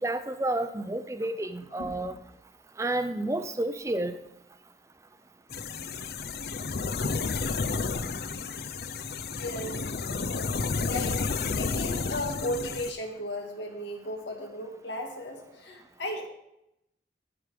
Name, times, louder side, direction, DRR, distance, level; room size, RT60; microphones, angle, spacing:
voice 1, 0.0-2.2 2.8-4.2, right 1 dB, 15° right, 10 dB, 0.5 m, -30 dB
voice 2, 1.8-2.2 8.9-9.8 10.8-16.3, left 1 dB, 90° left, 3 dB, 1.8 m, -36 dB
sound 1, 5.5-12.9, left 4 dB, 60° left, 0.5 m, -31 dB
15.0 x 5.0 x 4.9 m, 0.84 s
head